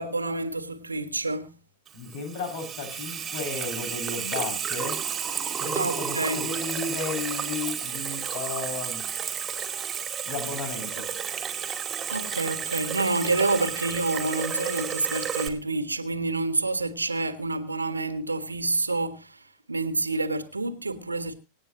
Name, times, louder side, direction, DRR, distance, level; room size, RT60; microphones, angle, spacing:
voice 1, 0.0-1.5 5.7-6.4 11.3-11.4 12.1-19.4 19.7-21.3, right 2 dB, 80° right, 1.5 m, -28 dB
voice 2, 1.9-5.0 5.6-9.0 10.2-11.1, left 4 dB, 50° left, 6.8 m, -34 dB
Water tap faucet / Sink (filling or washing), 1.9-15.5, right 7 dB, 20° right, 2.2 m, -32 dB
25.5 x 9.0 x 3.0 m
figure-of-eight pair, 90°, 0 cm